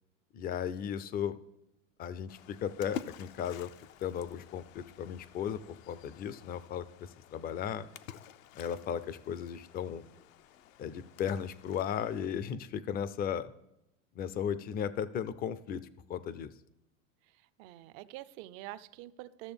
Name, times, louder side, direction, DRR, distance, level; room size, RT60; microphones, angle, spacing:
voice 1, 0.3-1.4 2.0-3.7 4.0-7.9 8.6-10.0 10.8-13.5 14.2-16.5, left 8 dB, 25° left, 16 dB, 0.4 m, -36 dB
Splash splatter, 2.3-12.3, left 9 dB, 80° left, 0.6 m, -50 dB
voice 2, 17.3-19.5, right 16 dB, 50° right, 17 dB, 0.5 m, -46 dB
13.5 x 6.6 x 3.5 m, 0.87 s
hypercardioid pair, 105°, 39 cm